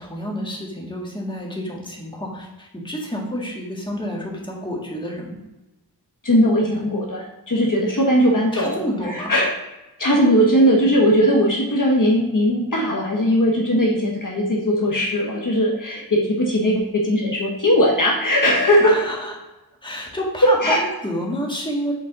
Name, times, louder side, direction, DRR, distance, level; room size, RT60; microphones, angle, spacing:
voice 1, 0.0-5.4 8.5-9.3 18.8-19.3 19.8-21.9, equal, 10° left, -3 dB, 1.8 m, -29 dB
voice 2, 6.2-9.5 10.0-18.9 20.4-20.8, equal, 50° left, -2 dB, 1.3 m, -19 dB
7.1 x 4.0 x 3.9 m, 1.0 s
wide cardioid pair, 60°, 40 cm